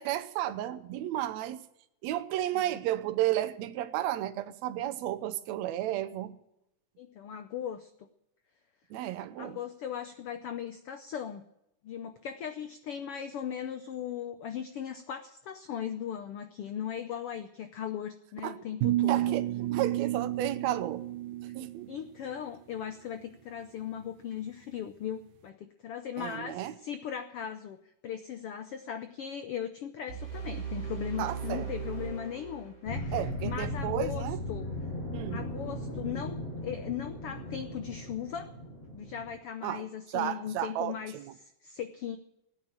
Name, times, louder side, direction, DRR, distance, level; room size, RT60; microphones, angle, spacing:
voice 1, 0.0-1.6 2.0-6.4 8.9-9.6 18.4-18.6 19.1-21.0 21.5-21.9 26.2-26.7 31.2-31.7 33.1-34.4 35.1-35.5 39.6-41.3, right 13 dB, 70° right, 2.0 m, -33 dB
voice 2, 7.0-7.9 9.4-11.4 11.8-19.3 21.9-27.8 28.0-34.7 35.3-38.5 38.9-42.2, left 9 dB, 80° left, 1.3 m, -38 dB
sound 1, 18.8-21.9, right 15 dB, 90° right, 2.4 m, -31 dB
sound 2, 30.1-33.1, right 6 dB, 10° left, 4.0 m, -38 dB
sound 3, 32.9-39.3, left 1 dB, 50° left, 6.7 m, -37 dB
16.5 x 9.4 x 8.8 m
omnidirectional pair, 3.6 m